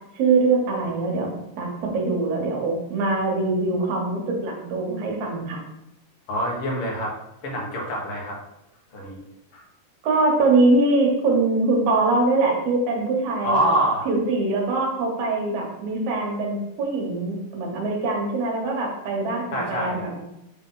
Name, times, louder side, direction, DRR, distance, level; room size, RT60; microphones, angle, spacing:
voice 1, 0.1-5.6 10.0-13.7 14.1-20.2, right 3 dB, 70° right, 0 dB, 2.4 m, -23 dB
voice 2, 6.3-7.1 7.4-8.4 8.9-9.2 9.5-9.6 13.4-14.1 19.5-20.0, right 1 dB, 55° left, -2 dB, 2.0 m, -25 dB
7.9 x 3.7 x 3.8 m, 0.89 s
omnidirectional pair, 3.5 m